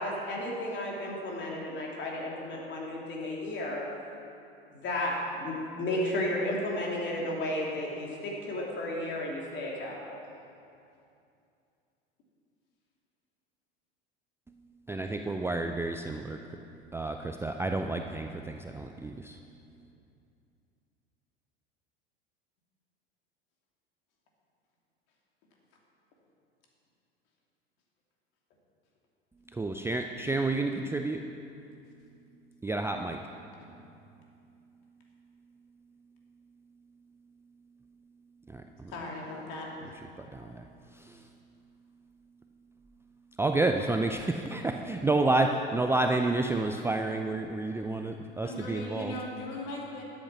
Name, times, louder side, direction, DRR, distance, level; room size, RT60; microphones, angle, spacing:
voice 1, 0.0-3.8 4.7-10.2, left 1 dB, 40° left, -3 dB, 3.3 m, -33 dB
voice 2, 14.9-16.4 16.9-19.4 29.5-31.3 32.6-33.2 38.5-38.9 40.2-40.6 40.9-41.2 43.4-49.1, right 2 dB, 10° right, 4 dB, 0.5 m, -30 dB
voice 3, 38.9-39.7 48.4-50.0, left 1 dB, 55° left, -2 dB, 2.8 m, -38 dB
12.5 x 8.2 x 6.2 m, 2.6 s
figure-of-eight pair, 75°, 30 cm